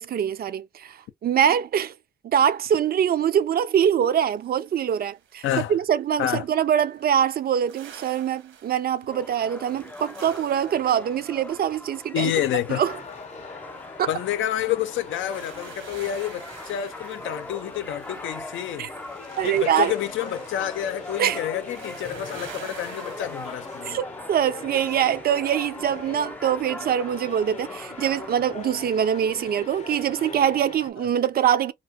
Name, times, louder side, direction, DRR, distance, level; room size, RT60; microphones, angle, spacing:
voice 1, 0.0-1.9 2.2-5.4 5.7-12.3 12.8-12.9 14.0-14.1 18.8-18.9 19.4-19.9 21.2-21.4 23.8-31.7, right 9 dB, 50° right, 0.4 m, -23 dB
sound 1, 4.3-5.6 6.3-23.9, right 8 dB, 75° right, 1.0 m, -48 dB
voice 2, 5.4-5.7 6.2-6.5 12.1-12.8 14.1-18.9 19.4-24.0 31.0-31.1, left 11 dB, 75° left, 0.6 m, -28 dB
sound 2, 9.1-28.6, left 2 dB, 10° left, 0.4 m, -41 dB
sound 3, 12.7-30.9, left 4 dB, 35° left, 0.7 m, -41 dB
2.8 x 2.4 x 2.8 m
cardioid pair, 90°, 20 cm